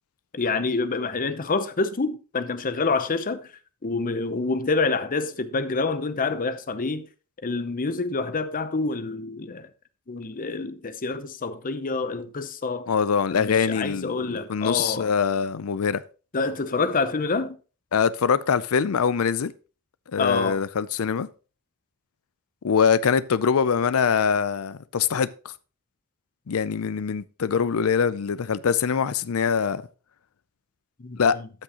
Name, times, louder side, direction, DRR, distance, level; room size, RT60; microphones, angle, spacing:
voice 1, 0.3-3.5 3.8-7.0 7.4-9.7 10.1-12.9 13.3-15.1 16.3-17.6 20.2-20.6 31.0-31.4, left 3 dB, 40° left, 0.7 m, -27 dB
voice 2, 12.9-16.0 17.9-19.5 20.1-21.3 22.6-25.3 26.5-29.8 31.2-31.4, left 6 dB, 70° left, 0.5 m, -23 dB
13.0 x 6.2 x 3.0 m
head